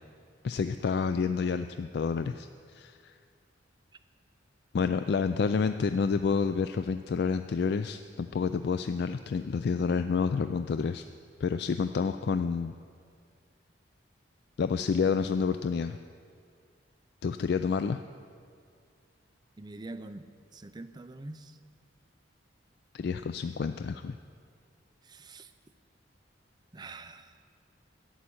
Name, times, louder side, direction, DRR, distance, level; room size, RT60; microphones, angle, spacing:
voice 1, 0.4-3.1 4.7-11.1 11.4-12.7 14.6-16.0 17.2-18.0 22.9-24.2, left 5 dB, 55° left, 10 dB, 0.3 m, -29 dB
voice 2, 19.6-21.6 25.0-25.5 26.7-27.3, right 2 dB, 20° right, 9 dB, 0.5 m, -45 dB
11.5 x 7.6 x 9.9 m, 2.2 s
head